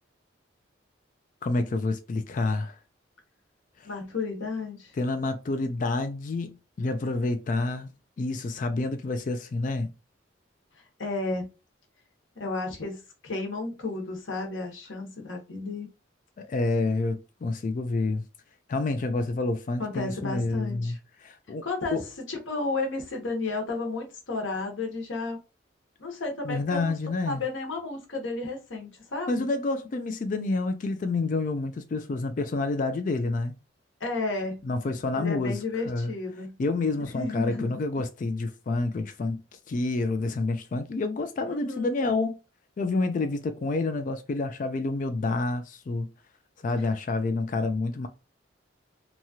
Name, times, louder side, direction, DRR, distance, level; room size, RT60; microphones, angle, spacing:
voice 1, 1.4-2.8 3.8-3.9 5.0-7.9 8.2-9.9 16.4-18.3 18.7-21.7 21.9-22.1 26.4-27.4 29.3-33.5 34.6-36.1 36.6-39.4 39.7-42.4 42.8-46.1 46.6-48.1, left 3 dB, 40° left, 0.3 m, -28 dB
voice 2, 3.8-4.9 11.0-11.5 12.4-15.9 19.8-21.0 21.6-22.0 22.3-25.4 26.0-26.9 27.2-29.4 34.0-34.6 35.2-36.5 37.1-37.8 41.4-42.0, left 3 dB, 75° left, 1.0 m, -32 dB
3.0 x 2.3 x 2.7 m
head